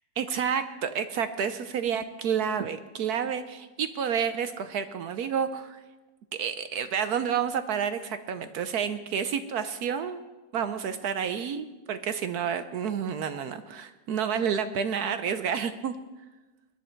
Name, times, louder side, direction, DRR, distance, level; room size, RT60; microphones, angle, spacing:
voice 1, 0.2-5.8 6.4-10.2 10.5-15.9, right 7 dB, 65° right, 10 dB, 1.1 m, -30 dB
21.0 x 10.0 x 4.5 m, 1.2 s
omnidirectional pair, 1.9 m